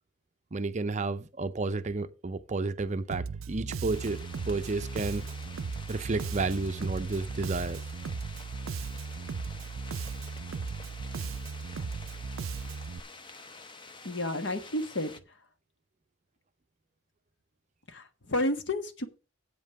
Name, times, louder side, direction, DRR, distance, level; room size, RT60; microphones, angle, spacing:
voice 1, 0.5-5.3 5.9-7.8, right 3 dB, 35° right, 0.5 m, -31 dB
Bass guitar, 3.1-13.0, right 5 dB, 85° right, 0.5 m, -37 dB
sound 1, 3.9-15.2, left 3 dB, 25° left, 0.7 m, -48 dB
voice 2, 14.0-15.1 17.9-19.1, left 1 dB, 60° left, 1.4 m, -31 dB
8.3 x 5.5 x 7.8 m
head